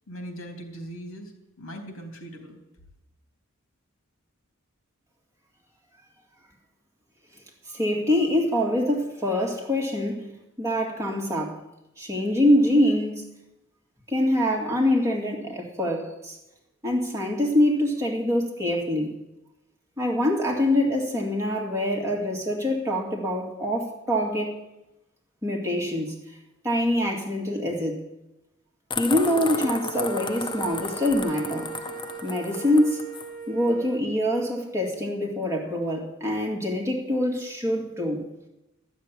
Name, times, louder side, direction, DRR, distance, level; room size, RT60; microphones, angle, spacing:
voice 1, 0.1-1.3 1.6-2.6, equal, 75° left, 3 dB, 3.1 m, -39 dB
voice 2, 7.7-10.3 10.6-11.6 12.0-13.2 14.1-16.4 16.8-19.2 20.0-24.6 25.4-26.1 26.6-28.0 29.0-31.7 32.2-33.1 33.5-38.3, left 1 dB, 15° right, -1 dB, 2.1 m, -24 dB
sound 1, 28.9-33.3, left 5 dB, 20° left, 0.5 m, -34 dB
sound 2, 29.1-34.0, right 6 dB, 40° right, 1.3 m, -38 dB
13.0 x 7.2 x 9.8 m, 0.92 s
head